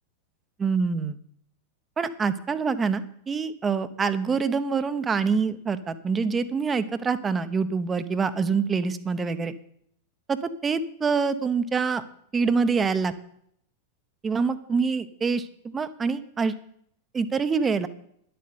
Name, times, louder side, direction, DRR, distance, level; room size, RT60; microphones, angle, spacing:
voice 1, 0.6-1.2 2.0-9.5 10.3-10.4 10.6-12.0 12.3-13.1 14.2-16.5 17.1-17.9, right 5 dB, 20° right, 12 dB, 0.9 m, -25 dB
10.5 x 7.8 x 9.5 m, 0.71 s
figure-of-eight pair, 90°, 0 cm